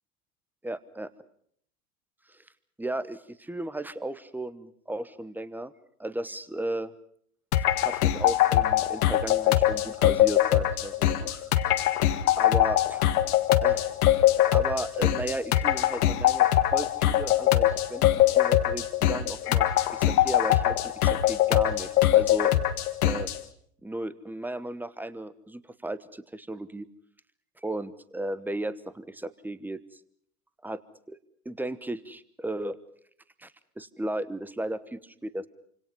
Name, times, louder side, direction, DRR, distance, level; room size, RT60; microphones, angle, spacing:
voice 1, 0.6-1.1 2.8-5.7 6.0-6.9 7.8-11.4 12.4-13.1 13.6-18.1 18.3-22.5 23.0-23.3 23.8-26.8 27.6-29.8 30.6-30.8 31.1-31.2 31.4-32.8 33.4-33.5 33.8-35.5, right 1 dB, 5° right, 15 dB, 1.1 m, -35 dB
sound 1, 7.5-23.4, left 13 dB, 70° left, 1.7 m, -23 dB
28.0 x 26.0 x 5.5 m, 0.65 s
hypercardioid pair, 90°, 46 cm